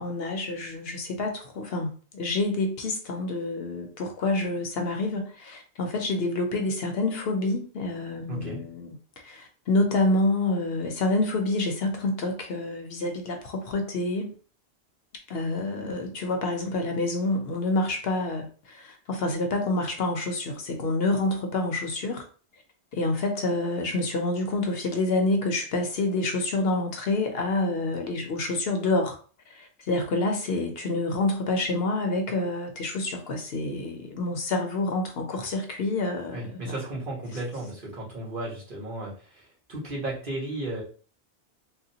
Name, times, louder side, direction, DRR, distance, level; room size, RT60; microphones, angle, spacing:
voice 1, 0.0-8.9 9.2-14.3 15.3-22.2 22.9-29.2 29.5-36.7, left 2 dB, 70° left, 4 dB, 0.8 m, -28 dB
voice 2, 8.3-8.6 36.3-40.8, right 1 dB, 50° right, -5 dB, 1.5 m, -34 dB
3.6 x 2.2 x 2.7 m, 0.40 s
omnidirectional pair, 1.1 m